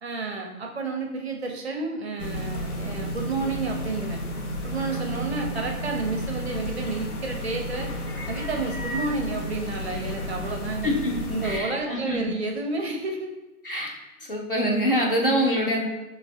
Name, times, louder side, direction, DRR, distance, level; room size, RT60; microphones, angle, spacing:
voice 1, 0.0-4.2 4.6-7.9 8.3-10.9 11.3-13.4, right 3 dB, 45° right, 2 dB, 0.5 m, -30 dB
sound 1, 2.2-11.6, equal, 80° left, 0.7 m, -32 dB
voice 2, 10.8-12.3 13.6-13.9 14.3-15.8, equal, 40° left, -1 dB, 0.4 m, -25 dB
3.2 x 2.1 x 2.5 m, 1.1 s
figure-of-eight pair, 145°, 44 cm